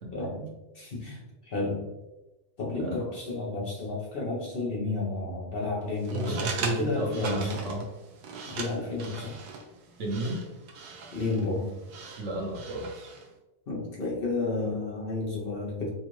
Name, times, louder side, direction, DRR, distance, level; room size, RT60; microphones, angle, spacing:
voice 1, 0.1-1.8 2.6-7.6 8.5-9.4 11.1-11.8 13.7-15.9, left 3 dB, 45° left, -4 dB, 0.8 m, -32 dB
sound 1, 6.0-13.3, right 5 dB, 90° right, 1.2 m, -40 dB
voice 2, 6.1-7.8 10.0-10.4 12.2-13.1, right 1 dB, 55° right, -1 dB, 1.1 m, -32 dB
4.3 x 2.4 x 3.1 m, 1.0 s
omnidirectional pair, 1.6 m